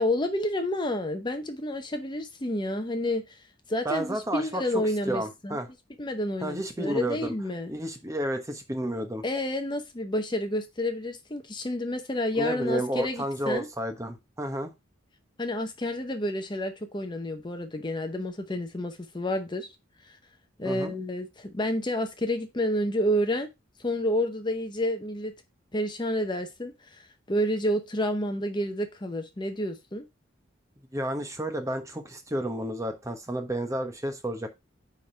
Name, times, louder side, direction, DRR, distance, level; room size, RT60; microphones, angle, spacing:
voice 1, 0.0-3.4 3.7-5.6 6.0-7.7 9.2-13.7 15.4-19.7 20.0-20.2 20.6-23.5 23.8-25.3 25.7-30.0, left 1 dB, 25° left, 0.7 m, -29 dB
voice 2, 3.8-5.7 6.4-7.3 7.7-9.2 12.3-14.7 20.6-20.9 30.9-34.5, right 1 dB, 15° right, 1.1 m, -31 dB
9.2 x 3.6 x 4.4 m
head